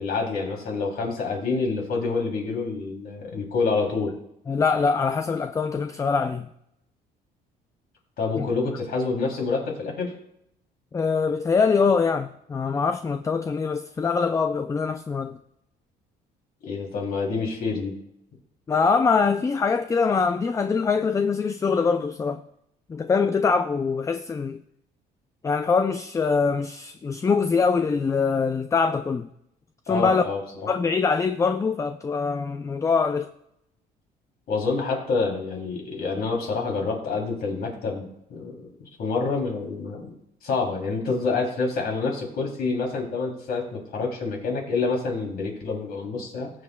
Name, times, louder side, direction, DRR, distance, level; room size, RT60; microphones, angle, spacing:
voice 1, 0.0-4.1 8.2-10.1 16.6-17.9 29.9-30.4 34.5-40.1 40.4-46.5, left 4 dB, 65° left, 3.1 m, -27 dB
voice 2, 4.5-6.5 8.4-8.5 10.9-15.4 18.7-22.4 22.9-24.6 25.4-29.3 29.9-30.2 30.7-33.3, left 5 dB, 20° left, 0.3 m, -23 dB
19.5 x 7.4 x 2.3 m
cardioid pair, 120°, 17 cm